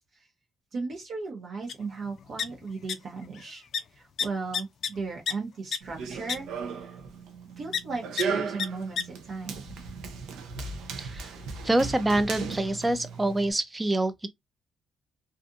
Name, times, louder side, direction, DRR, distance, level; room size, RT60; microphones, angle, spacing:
voice 1, 0.7-7.0 7.6-9.7, right 4 dB, 60° right, 0.9 m, -36 dB
sound 1, 1.7-1.8 2.0-2.9 3.2-3.5 3.7-3.8 4.2-5.3 5.7-5.8 6.3-6.4 7.7-7.8 8.2-8.3 8.6-8.7 9.0-9.1, left 7 dB, 65° left, 0.3 m, -30 dB
Run, 5.8-13.5, right 5 dB, 85° right, 0.6 m, -36 dB
voice 2, 11.0-11.3 11.6-14.3, right 1 dB, 15° right, 0.5 m, -26 dB
2.5 x 2.5 x 2.5 m
cardioid pair, 90°, 0 cm